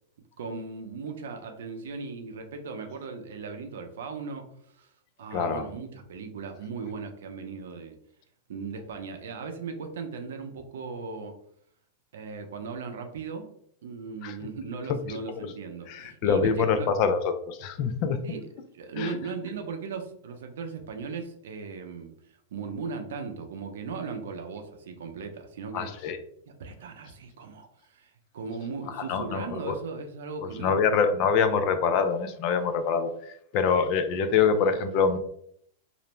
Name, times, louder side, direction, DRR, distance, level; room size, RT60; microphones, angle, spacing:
voice 1, 0.4-4.9 5.2-8.0 8.5-11.3 12.1-13.5 13.8-16.9 18.2-18.4 18.7-22.1 22.5-25.9 26.5-31.2, right 4 dB, 85° right, 5 dB, 0.5 m, -37 dB
voice 2, 5.3-5.7 14.2-14.3 14.9-15.0 15.9-18.2 19.0-19.1 25.7-26.2 28.9-29.8 30.4-35.2, left 6 dB, 40° left, 9 dB, 0.3 m, -25 dB
2.5 x 2.1 x 2.9 m, 0.67 s
supercardioid pair, 160°, 0 cm